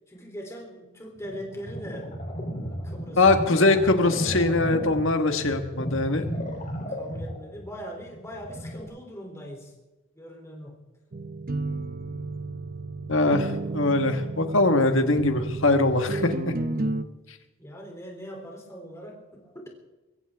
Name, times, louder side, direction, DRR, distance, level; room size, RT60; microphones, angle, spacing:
voice 1, 0.1-2.1 2.5-3.2 6.9-9.7 10.1-10.8 17.6-19.7, equal, 15° left, 1 dB, 3.3 m, -41 dB
sound 1, 1.2-8.8, equal, 35° left, 3.6 m, -34 dB
voice 2, 3.2-6.2 13.1-16.5, left 2 dB, 60° left, 6 dB, 1.7 m, -22 dB
sound 2, 11.1-17.0, right 2 dB, 40° right, 0.8 m, -32 dB
23.0 x 16.0 x 3.6 m, 1.1 s
head